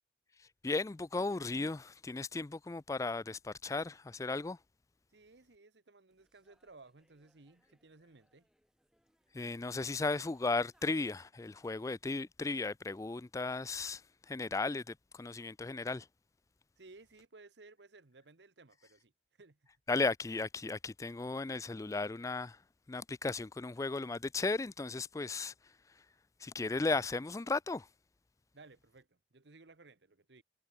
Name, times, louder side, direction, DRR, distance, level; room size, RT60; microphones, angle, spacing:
voice 1, 0.6-4.6 9.3-14.0 14.3-16.1 19.9-22.6 22.9-25.5 26.4-27.9, left 3 dB, 20° left, 0.3 m, -35 dB
voice 2, 5.1-8.5 16.8-19.1 19.4-19.6 28.5-30.4, right 3 dB, 80° right, 1.2 m, -58 dB
sound 1, 6.1-11.7, equal, 5° right, 3.6 m, -75 dB
head